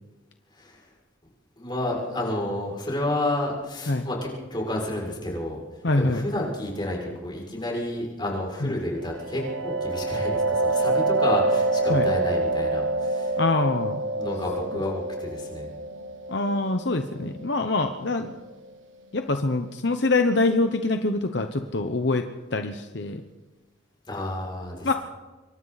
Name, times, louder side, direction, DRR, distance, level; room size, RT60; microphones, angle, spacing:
voice 1, 0.5-0.9 1.6-5.6 6.0-13.4 14.1-15.7 24.1-24.9, left 1 dB, 25° left, -2 dB, 6.3 m, -30 dB
voice 2, 5.8-6.2 8.6-8.7 11.9-12.1 13.4-14.0 14.7-14.8 16.3-18.4 19.1-23.2 24.8-24.9, left 2 dB, 65° left, 7 dB, 1.0 m, -25 dB
sound 1, 9.0-18.5, right 2 dB, 85° right, 1.3 m, -27 dB
26.5 x 23.5 x 4.2 m, 1.2 s
head